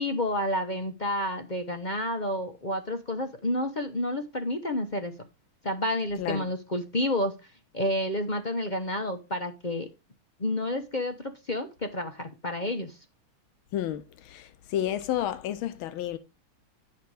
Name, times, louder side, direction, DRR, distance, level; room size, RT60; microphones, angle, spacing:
voice 1, 0.0-5.1 5.6-7.4 7.7-9.9 10.4-13.0, left 1 dB, 40° left, 0.6 m, -30 dB
voice 2, 13.7-16.2, left 11 dB, 85° left, 1.5 m, -31 dB
10.0 x 5.7 x 4.8 m
omnidirectional pair, 2.2 m